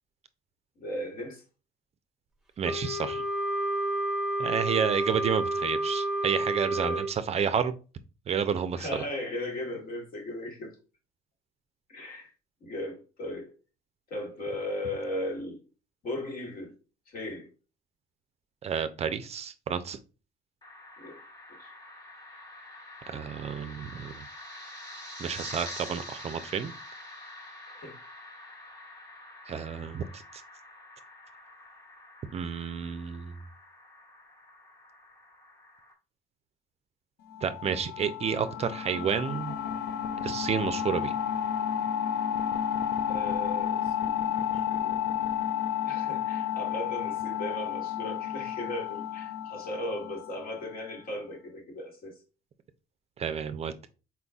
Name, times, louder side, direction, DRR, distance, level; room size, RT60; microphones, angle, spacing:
voice 1, 0.8-1.4 6.7-7.1 8.8-10.7 11.9-12.3 12.6-13.5 14.1-15.6 16.0-16.7 17.1-17.5 21.0-21.2 21.6-21.7 27.7-28.0 43.1-45.2 45.8-52.1, left 1 dB, 60° left, 1.7 m, -37 dB
Wind instrument woodwind instrument, 2.6-7.1, right 1 dB, ahead, 0.7 m, -30 dB
voice 2, 2.6-3.2 4.4-7.7 8.3-9.0 18.6-20.0 23.1-24.3 25.2-26.7 29.5-30.4 32.3-33.4 37.4-39.6 40.2-41.1 53.2-53.7, right 7 dB, 40° right, 0.4 m, -30 dB
sound 1, 20.6-35.9, left 1 dB, 25° left, 1.3 m, -46 dB
sound 2, 37.3-50.8, left 9 dB, 75° left, 0.5 m, -31 dB
4.3 x 3.9 x 2.3 m
cardioid pair, 110°, 17 cm